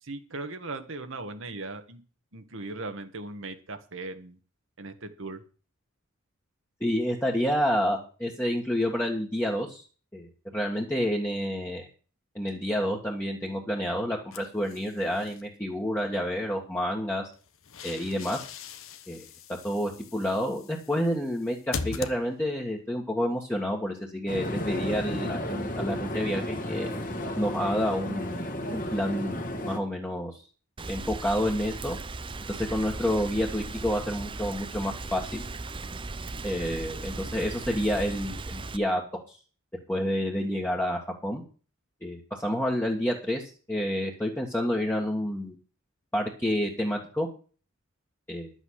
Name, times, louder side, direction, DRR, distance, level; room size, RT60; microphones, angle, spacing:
voice 1, 0.0-2.0 2.3-4.4 4.8-5.4, right 2 dB, 65° right, 7 dB, 1.7 m, -38 dB
voice 2, 6.8-9.8 10.1-11.9 12.4-17.2 17.8-18.4 19.1-19.3 19.6-26.9 27.4-28.5 28.7-30.4 30.9-32.0 32.5-35.4 36.4-39.4 39.9-41.4 42.0-45.6 46.1-47.3 48.3-48.5, equal, 10° left, -2 dB, 1.8 m, -29 dB
sound 1, 14.3-15.4 17.3-22.7, left 5 dB, 75° left, 1.2 m, -41 dB
sound 2, 24.3-29.8, left 1 dB, 40° left, 2.2 m, -33 dB
Rain, 30.8-38.8, right 3 dB, 25° right, 0.6 m, -37 dB
11.0 x 8.2 x 6.5 m, 0.38 s
head